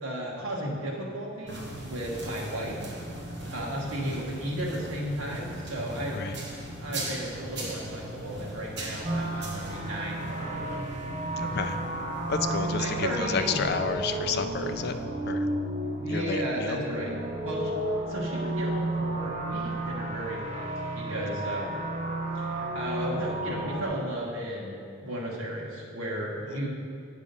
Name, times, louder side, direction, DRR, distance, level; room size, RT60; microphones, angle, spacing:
voice 1, 0.0-3.0 3.5-6.2 6.8-10.8 11.4-11.5 12.8-13.6 15.9-17.7 18.1-20.7 20.9-21.8 22.3-26.7, right 1 dB, 90° right, -3 dB, 1.5 m, -34 dB
sound 1, 1.5-15.0, right 1 dB, 55° right, 1.4 m, -39 dB
sound 2, 9.0-23.9, right 1 dB, 35° right, 0.8 m, -32 dB
voice 2, 11.4-11.8 12.3-14.9 15.3-15.5 16.1-16.8 26.5-26.7, left 5 dB, 50° left, 8 dB, 0.4 m, -31 dB
8.4 x 5.0 x 5.3 m, 2.4 s
head